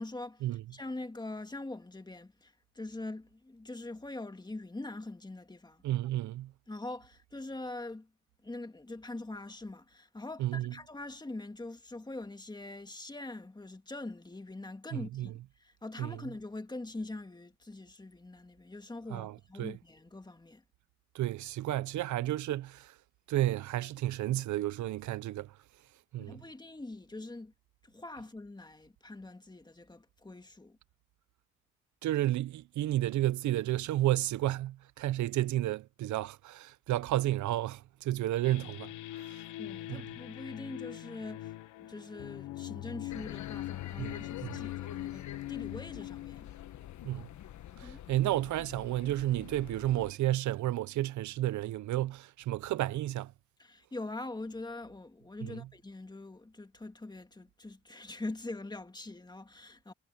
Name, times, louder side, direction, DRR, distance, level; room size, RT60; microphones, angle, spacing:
voice 1, 0.0-5.8 6.7-8.1 8.4-15.3 15.6-20.6 26.2-27.5 27.8-30.8 39.6-46.5 47.8-48.3 53.6-59.9, left 2 dB, 15° left, 2.0 m, -43 dB
voice 2, 5.8-6.5 10.4-10.7 14.9-15.3 16.0-16.2 19.1-19.7 21.1-22.9 23.3-25.5 26.1-26.4 32.0-38.9 39.9-40.0 44.0-44.1 44.4-44.6 47.0-47.3 47.8-53.3 55.4-55.6, right 14 dB, 70° right, 0.7 m, -31 dB
sound 1, 38.4-47.8, left 16 dB, 85° left, 0.8 m, -42 dB
sound 2, 43.1-50.1, left 11 dB, 70° left, 1.3 m, -48 dB
cardioid pair, 90°, 30 cm